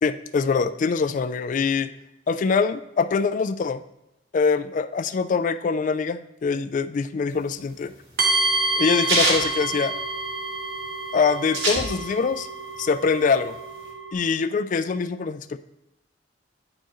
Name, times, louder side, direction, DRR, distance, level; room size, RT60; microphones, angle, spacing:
voice 1, 0.0-1.9 2.3-3.8 4.3-7.9 8.8-9.9 11.1-12.5 12.8-13.6 14.1-15.6, left 5 dB, 40° left, 12 dB, 0.3 m, -24 dB
sound 1, 7.3-10.5 10.8-10.9 11.1-12.4 12.7-13.9, right 1 dB, 70° right, 2.2 m, -26 dB
sound 2, 8.2-14.1, right 2 dB, 50° right, 0.8 m, -28 dB
9.6 x 4.5 x 3.0 m, 0.90 s
head